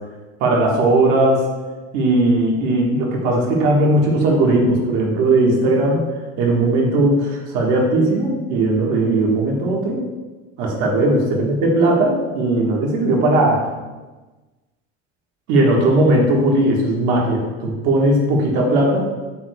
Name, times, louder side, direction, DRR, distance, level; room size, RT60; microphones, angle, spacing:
voice 1, 0.4-1.5 1.9-6.0 6.4-10.0 10.6-13.6 15.5-19.0, right 2 dB, 55° right, -1 dB, 1.5 m, -17 dB
8.6 x 6.6 x 2.3 m, 1.2 s
cardioid pair, 175°, 34 cm